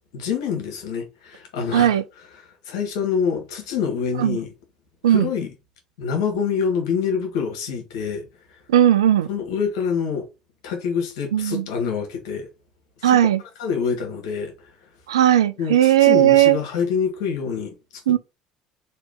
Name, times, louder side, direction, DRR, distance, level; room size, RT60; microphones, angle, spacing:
voice 1, 0.1-4.5 5.1-5.5 6.0-8.6 9.3-10.3 10.6-12.5 13.0-13.2 13.6-14.7 15.6-17.7 18.1-18.2, left 6 dB, 80° left, 1.2 m, -26 dB
voice 2, 1.7-2.0 4.2-4.4 5.0-5.3 8.7-9.3 11.3-11.6 13.0-13.4 15.1-16.6 18.1-18.2, right 12 dB, 85° right, 0.3 m, -16 dB
3.1 x 2.7 x 3.6 m
hypercardioid pair, 65°, 3 cm